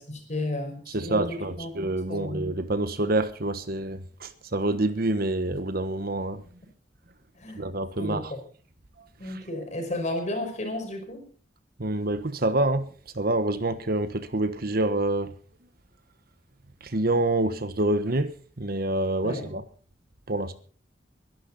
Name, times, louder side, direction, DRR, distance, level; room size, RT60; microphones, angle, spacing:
voice 1, 0.0-1.7 2.1-2.4 7.4-7.7 8.0-8.4 9.2-11.2 19.2-19.5, left 1 dB, 40° left, 5.3 m, -33 dB
voice 2, 0.9-6.4 7.6-8.2 11.8-12.9 13.2-15.3 16.9-18.3 18.6-19.6 20.3-20.5, right 2 dB, 55° right, 1.3 m, -27 dB
22.5 x 11.5 x 4.2 m
head